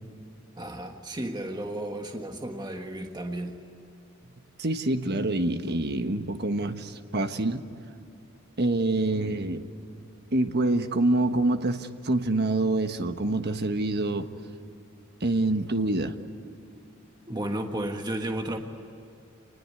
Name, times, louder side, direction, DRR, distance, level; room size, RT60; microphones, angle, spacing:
voice 1, 0.6-3.6 17.3-18.6, right 1 dB, 20° right, 4 dB, 1.5 m, -33 dB
voice 2, 4.6-7.6 8.6-9.6 10.3-14.3 15.2-16.1, right 2 dB, 55° right, 8 dB, 1.4 m, -26 dB
27.5 x 20.5 x 9.6 m, 2.6 s
head